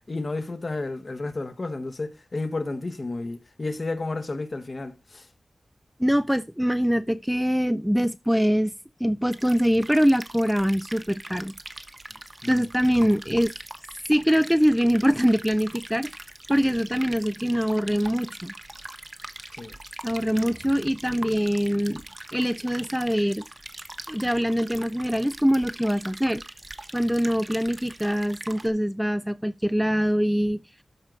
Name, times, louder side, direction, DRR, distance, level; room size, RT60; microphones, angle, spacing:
voice 1, 0.1-5.3 12.4-12.7 19.5-19.8, left 2 dB, 45° left, 1.5 m, -32 dB
voice 2, 6.0-8.7 9.0-11.5 12.5-13.5 14.1-16.1 16.5-18.5 20.0-22.0 22.3-23.4 24.1-26.4 26.9-30.6, equal, 5° right, 0.4 m, -23 dB
sound 1, 9.3-28.7, right 2 dB, 30° right, 1.2 m, -42 dB
12.5 x 4.9 x 4.0 m
wide cardioid pair, 105°, 0 cm